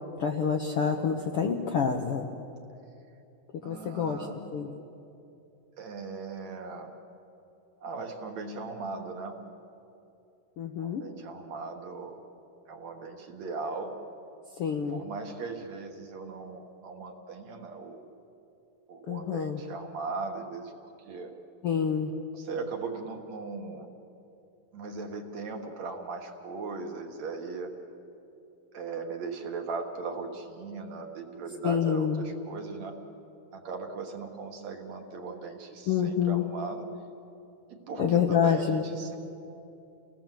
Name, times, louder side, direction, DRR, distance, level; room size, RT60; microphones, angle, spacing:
voice 1, 0.2-2.3 3.6-4.2 4.5-4.7 10.6-11.0 14.6-15.0 19.1-19.6 21.6-22.1 31.6-32.2 35.9-36.4 38.0-38.8, left 7 dB, 70° left, 3 dB, 1.4 m, -27 dB
voice 2, 3.6-4.4 5.8-6.9 7.8-9.4 10.8-12.2 12.7-13.9 14.9-18.0 18.9-21.3 22.3-23.9 24.7-27.7 28.7-33.0 33.5-36.9 37.7-39.2, right 4 dB, 60° right, 3 dB, 2.6 m, -38 dB
29.0 x 18.5 x 7.6 m, 2.7 s
omnidirectional pair, 3.9 m